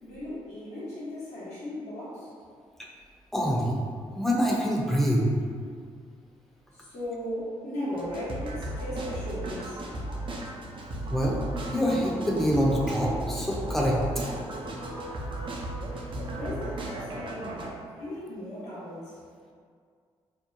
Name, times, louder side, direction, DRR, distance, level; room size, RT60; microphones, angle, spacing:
voice 1, 0.0-2.3 6.7-9.9 16.3-19.2, left 1 dB, 75° left, -9 dB, 1.1 m, -37 dB
voice 2, 3.3-3.8 4.1-5.3 11.1-11.4 11.7-14.0, equal, 5° left, -4 dB, 0.6 m, -25 dB
sound 1, 7.9-17.7, right 1 dB, 45° right, 0.4 m, -35 dB
2.8 x 2.0 x 2.5 m, 2.1 s
supercardioid pair, 60°, 11 cm